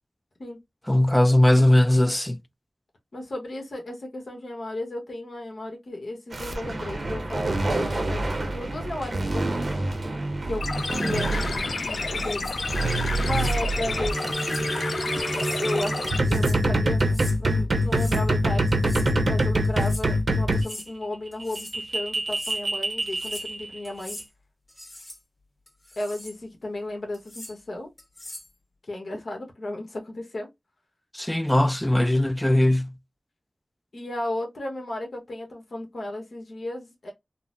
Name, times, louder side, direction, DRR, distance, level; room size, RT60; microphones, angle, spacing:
voice 1, 0.9-2.4 31.1-32.9, left 1 dB, 10° left, 0.3 m, -19 dB
voice 2, 3.1-9.6 10.4-10.7 11.0-12.6 13.1-14.2 14.5-14.8 15.6-18.7 19.2-24.2 26.0-27.9 28.9-30.5 33.9-37.1, left 1 dB, 70° left, 1.0 m, -34 dB
sound 1, 6.3-20.7 21.4-23.8, right 1 dB, 65° right, 0.7 m, -26 dB
sound 2, 10.6-16.2, left 4 dB, 85° left, 0.3 m, -30 dB
sound 3, 12.0-12.6 13.2-13.6 14.4-14.7 15.2-15.6 16.1-16.6 17.0-17.4 17.8-18.3 18.7-19.1 19.6-20.1 20.5-20.9 21.3-21.8 22.1-22.6 23.0-23.5 23.8-24.3 24.7-25.2 25.7-26.4 27.1-27.5 28.0-28.5, left 1 dB, 35° left, 1.5 m, -42 dB
3.8 x 2.0 x 2.5 m
wide cardioid pair, 65°, 0 cm